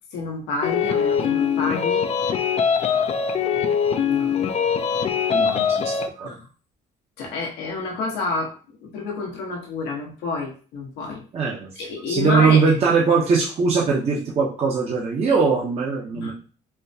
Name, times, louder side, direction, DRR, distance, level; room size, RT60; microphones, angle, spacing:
voice 1, 0.1-2.0 2.9-3.1 4.1-4.4 6.2-6.5 7.2-8.6 8.8-11.2 11.8-12.7 16.2-16.3, left 3 dB, 90° left, -1 dB, 1.1 m, -29 dB
sound 1, 0.6-6.1, left 7 dB, 40° left, 0.4 m, -22 dB
voice 2, 5.3-5.8 6.2-6.3 11.3-11.7 12.1-16.3, right 5 dB, 40° right, -3 dB, 0.8 m, -20 dB
4.4 x 2.2 x 2.7 m, 0.38 s
cardioid pair, 110°, 17 cm